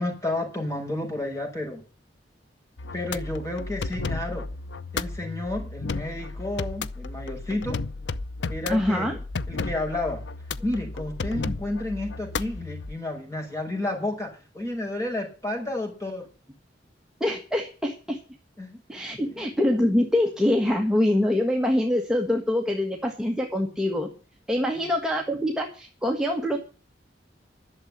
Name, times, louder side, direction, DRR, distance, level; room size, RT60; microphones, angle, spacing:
voice 1, 0.0-1.8 2.9-4.4 4.9-7.8 8.5-9.2 9.5-10.2 10.6-16.3 18.6-18.8 24.7-24.9, left 1 dB, 15° left, 1 dB, 6.0 m, -31 dB
sound 1, 2.8-12.9, left 3 dB, 80° left, 0.6 m, -33 dB
voice 2, 8.7-9.1 17.2-18.2 18.9-24.1 24.5-26.6, left 1 dB, 5° right, 1 dB, 1.5 m, -24 dB
11.5 x 7.4 x 9.9 m, 0.37 s
head